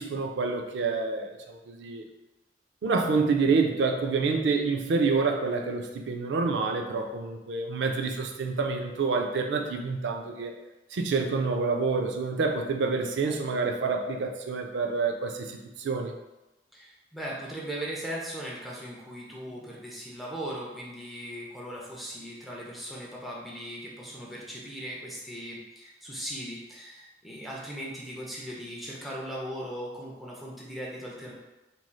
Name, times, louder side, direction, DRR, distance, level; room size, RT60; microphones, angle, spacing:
voice 1, 0.0-2.0 2.8-10.5 10.9-16.1, right 4 dB, 70° right, 3 dB, 0.4 m, -27 dB
voice 2, 16.7-31.3, equal, ahead, -5 dB, 0.4 m, -38 dB
3.0 x 2.6 x 2.2 m, 1.0 s
head